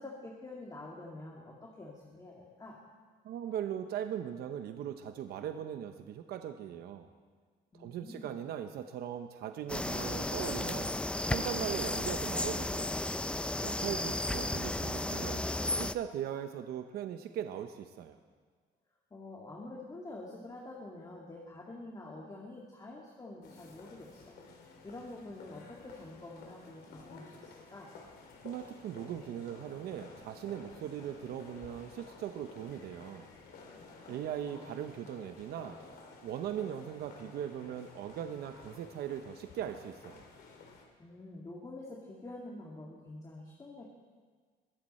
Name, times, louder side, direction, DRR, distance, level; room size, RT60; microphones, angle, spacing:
voice 1, 0.0-2.8 7.7-8.4 19.1-24.3 24.8-27.9 33.7-34.1 34.5-34.8 41.0-43.8, left 2 dB, 20° left, -3 dB, 2.2 m, -47 dB
voice 2, 3.2-7.1 7.8-10.9 11.3-12.9 13.6-15.5 15.8-18.2 28.4-33.3 34.1-35.8 36.2-40.2, right 10 dB, 70° right, 7 dB, 0.9 m, -39 dB
sound 1, 9.7-15.9, left 1 dB, 5° left, 0.5 m, -34 dB
sound 2, 23.4-40.8, left 4 dB, 70° left, 3.0 m, -53 dB
22.0 x 13.5 x 4.4 m, 1.6 s
cardioid pair, 110°, 17 cm